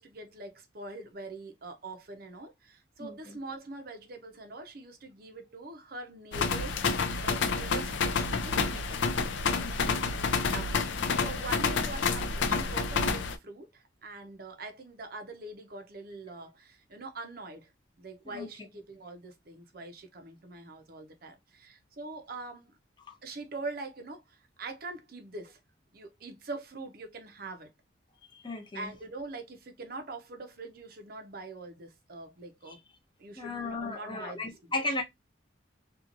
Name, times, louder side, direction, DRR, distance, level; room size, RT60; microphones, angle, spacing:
voice 1, 0.0-9.0 10.5-17.7 18.0-22.7 23.2-25.6 25.9-27.7 28.7-32.8 33.2-34.7, right 3 dB, 50° right, 0.6 m, -43 dB
voice 2, 3.0-3.4 9.6-10.0 18.3-18.5 23.1-23.2 28.3-28.9 32.7-32.8 33.4-35.0, left 2 dB, 25° left, 0.6 m, -36 dB
sound 1, 6.3-13.4, left 4 dB, 65° left, 0.4 m, -29 dB
2.9 x 2.4 x 2.4 m
head